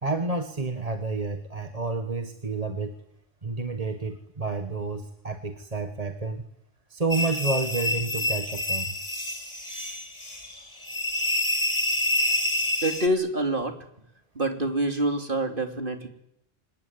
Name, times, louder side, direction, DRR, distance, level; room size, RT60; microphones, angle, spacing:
voice 1, 0.0-2.9 3.4-6.4 6.9-9.0, right 3 dB, 30° right, 7 dB, 1.7 m, -30 dB
sound 1, 7.1-13.1, left 2 dB, 30° left, 2.5 m, -28 dB
voice 2, 12.8-13.8 14.3-16.1, right 1 dB, 50° right, 5 dB, 3.4 m, -26 dB
25.5 x 21.0 x 9.8 m, 0.76 s
omnidirectional pair, 1.2 m